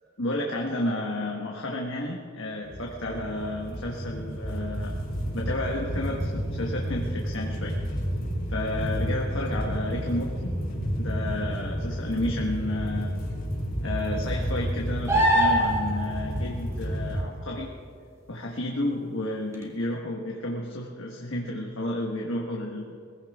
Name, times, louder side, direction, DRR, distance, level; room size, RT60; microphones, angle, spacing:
voice 1, 0.2-5.0 5.3-7.8 8.5-10.5 11.0-13.2 13.8-17.7 18.3-23.0, left 1 dB, 75° left, -1 dB, 1.4 m, -31 dB
sound 1, 2.6-17.2, equal, 50° left, 3.6 m, -31 dB
sound 2, 15.1-16.0 19.5-19.6, equal, 15° right, 2.4 m, -21 dB
20.0 x 15.5 x 3.6 m, 2.4 s
head